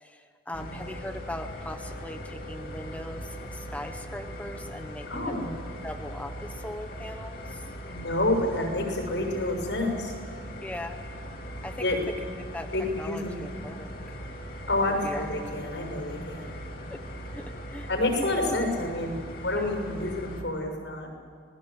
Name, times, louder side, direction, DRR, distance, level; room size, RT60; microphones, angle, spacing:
voice 1, 0.0-5.4 5.8-7.7 10.6-11.0 11.6-11.9 12.5-12.7 13.0-14.2 14.8-15.3 16.9-17.0 17.3-17.9 19.5-19.8, left 1 dB, 10° left, 5 dB, 1.1 m, -40 dB
sound 1, 0.5-20.4, equal, 55° left, 2.9 m, -40 dB
voice 2, 5.1-5.5 7.9-10.1 11.8-12.0 12.7-13.4 14.7-16.5 17.9-21.1, left 2 dB, 85° left, 3 dB, 6.6 m, -28 dB
26.5 x 20.5 x 8.1 m, 2.1 s
head